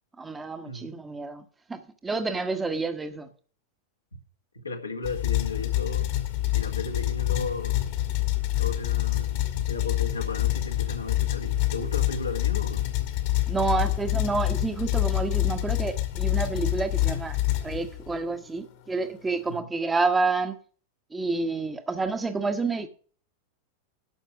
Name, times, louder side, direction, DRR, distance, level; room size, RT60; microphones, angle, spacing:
voice 1, 0.2-3.3 13.5-20.6 21.1-22.9, right 3 dB, 10° right, 1.1 m, -29 dB
voice 2, 4.5-6.1 6.5-7.8 8.5-12.9 19.4-19.7, left 3 dB, 80° left, 1.9 m, -35 dB
sound 1, 5.0-18.2, left 15 dB, 50° left, 1.7 m, -27 dB
12.0 x 6.5 x 5.9 m
figure-of-eight pair, 90°, 0 cm